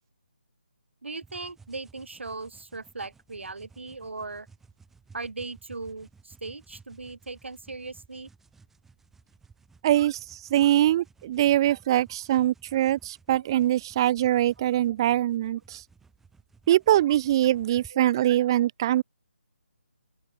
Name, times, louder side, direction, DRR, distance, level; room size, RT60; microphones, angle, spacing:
voice 1, 1.0-4.5 5.1-8.3 13.4-13.5 17.9-18.0, right 3 dB, 85° right, 1.6 m, -38 dB
sound 1, 1.2-17.9, right 4 dB, 5° right, 7.3 m, -57 dB
voice 2, 9.8-15.8 16.7-19.0, right 13 dB, 25° right, 0.4 m, -23 dB
open air
figure-of-eight pair, 160°, 6 cm